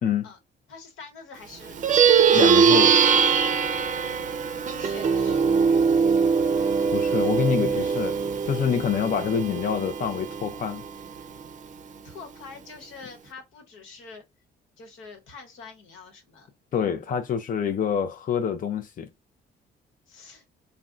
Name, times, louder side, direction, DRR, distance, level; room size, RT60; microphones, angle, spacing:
voice 1, 0.7-1.8 2.1-2.7 3.1-3.2 4.8-5.4 12.0-14.2 14.8-16.5 20.1-20.4, left 4 dB, 85° left, 1.1 m, -45 dB
Plucked string instrument, 1.7-11.4, right 6 dB, 40° right, 0.5 m, -22 dB
voice 2, 2.3-3.0 6.9-8.2 8.4-10.8 16.7-19.1, left 7 dB, 45° left, 0.5 m, -26 dB
3.5 x 2.2 x 2.5 m
cardioid pair, 90°, 20 cm